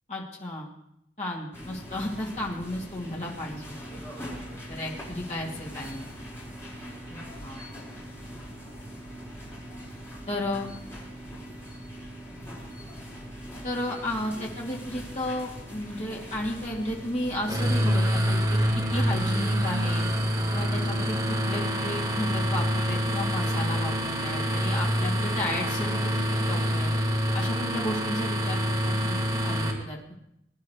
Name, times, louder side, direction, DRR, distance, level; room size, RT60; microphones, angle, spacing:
voice 1, 0.1-0.7 1.2-4.0 4.7-6.2 7.1-7.6 10.3-10.7 13.6-20.0 20.5-26.9 27.3-30.2, left 1 dB, 40° left, -4 dB, 2.7 m, -34 dB
sound 1, 1.5-17.7, equal, 15° left, 4.9 m, -41 dB
sound 2, 17.5-29.7, equal, 20° right, 2.1 m, -26 dB
22.0 x 10.5 x 3.3 m, 0.79 s
head